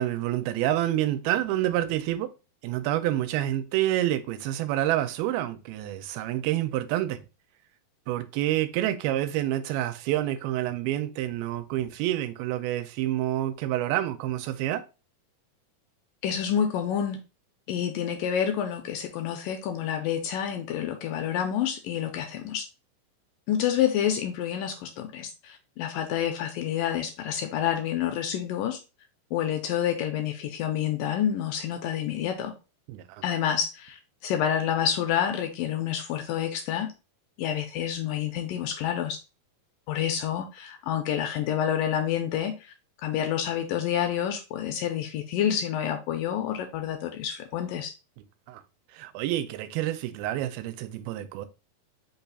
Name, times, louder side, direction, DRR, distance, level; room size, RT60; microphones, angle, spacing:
voice 1, 0.0-2.3 2.6-7.2 8.1-14.8 32.9-33.2 48.5-48.6 48.9-51.5, right 13 dB, 85° right, 2.4 m, -28 dB
voice 2, 16.2-17.2 17.7-22.7 23.5-28.8 29.3-32.5 33.2-36.9 37.4-39.2 39.9-42.7 43.0-47.9, left 9 dB, 80° left, 2.0 m, -28 dB
5.6 x 2.3 x 3.9 m
omnidirectional pair, 4.3 m